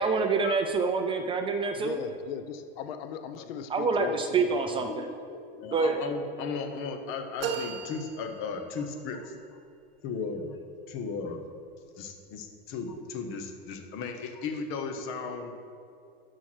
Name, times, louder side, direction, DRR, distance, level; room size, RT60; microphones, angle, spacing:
voice 1, 0.0-2.0 3.7-5.1 5.7-6.0, right 4 dB, 20° right, 5 dB, 0.4 m, -26 dB
voice 2, 1.8-4.9, left 8 dB, 75° left, 10 dB, 0.7 m, -38 dB
voice 3, 4.8-9.3 10.0-10.6 10.9-11.4 12.0-15.5, left 5 dB, 45° left, 6 dB, 1.2 m, -36 dB
sound 1, 7.4-9.1, right 7 dB, 70° right, 1.0 m, -36 dB
12.5 x 4.7 x 6.1 m, 2.4 s
supercardioid pair, 150°, 29 cm